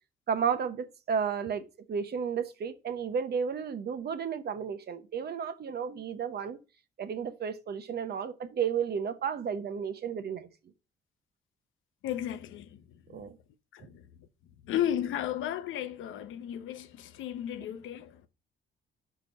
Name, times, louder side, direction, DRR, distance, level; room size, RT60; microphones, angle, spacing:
voice 1, 0.3-6.6 7.0-10.5 13.1-13.4, right 7 dB, 55° right, 0.8 m, -32 dB
voice 2, 12.0-13.0 13.3-13.4 13.7-14.1 14.6-18.2, left 11 dB, 80° left, 0.7 m, -34 dB
4.7 x 4.7 x 5.3 m
cardioid pair, 90°, 20 cm